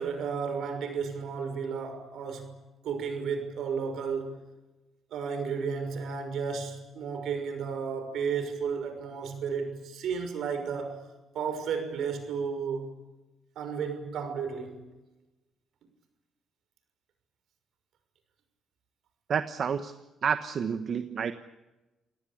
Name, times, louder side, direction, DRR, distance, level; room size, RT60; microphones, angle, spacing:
voice 1, 0.0-2.5 2.8-4.4 5.1-11.0 11.3-12.9 13.6-14.8, right 6 dB, 75° right, 6.1 m, -33 dB
voice 2, 19.3-19.9 20.2-21.3, right 7 dB, 55° right, 1.2 m, -29 dB
29.0 x 18.0 x 8.7 m
cardioid pair, 90°, 0 cm